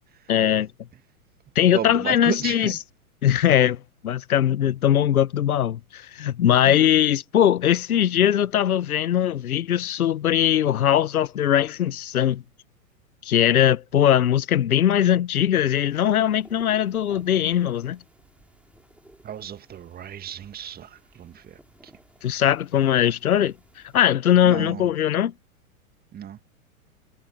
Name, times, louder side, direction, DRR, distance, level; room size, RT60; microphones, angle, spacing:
voice 1, 0.3-0.7 1.5-2.7 3.2-12.4 13.2-18.0 22.2-23.5 23.9-25.3, left 10 dB, 75° left, 1.2 m, -20 dB
voice 2, 1.7-2.8 6.6-6.8 19.2-21.9 24.4-24.9 26.1-26.4, right 9 dB, 20° right, 2.0 m, -34 dB
sound 1, 15.7-24.1, right 1 dB, 5° right, 6.9 m, -54 dB
hypercardioid pair, 105°, 44 cm